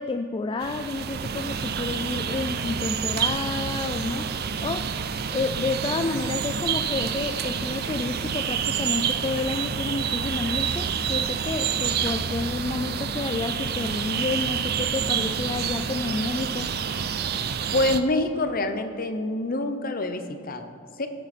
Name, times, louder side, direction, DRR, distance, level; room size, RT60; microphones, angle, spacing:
voice 1, 0.0-4.9 5.3-16.7, left 3 dB, 25° left, 6 dB, 0.3 m, -30 dB
sound 1, 0.6-18.0, right 7 dB, 50° right, 0.5 m, -28 dB
voice 2, 17.7-21.1, left 2 dB, 45° left, 8 dB, 0.8 m, -26 dB
16.5 x 7.0 x 4.3 m, 2.3 s
head